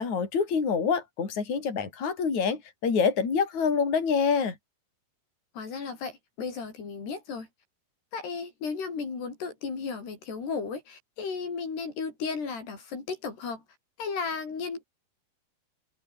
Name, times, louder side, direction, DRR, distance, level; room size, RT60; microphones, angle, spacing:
voice 1, 0.0-4.6, left 5 dB, 45° left, 6.1 m, -26 dB
voice 2, 5.5-7.5 8.1-13.6 14.0-14.8, left 5 dB, 80° left, 8.2 m, -34 dB
omnidirectional pair, 4.7 m